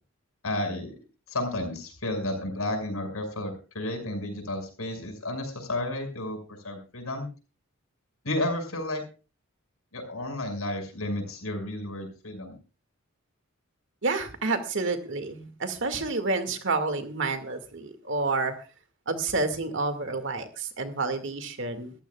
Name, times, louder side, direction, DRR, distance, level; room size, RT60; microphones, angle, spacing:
voice 1, 0.4-0.9 1.3-7.3 8.2-9.0 9.9-12.6, left 1 dB, 90° left, 5 dB, 6.0 m, -32 dB
voice 2, 14.0-18.5 19.1-21.9, right 3 dB, 60° right, 8 dB, 2.1 m, -29 dB
24.5 x 14.5 x 2.4 m, 0.34 s
head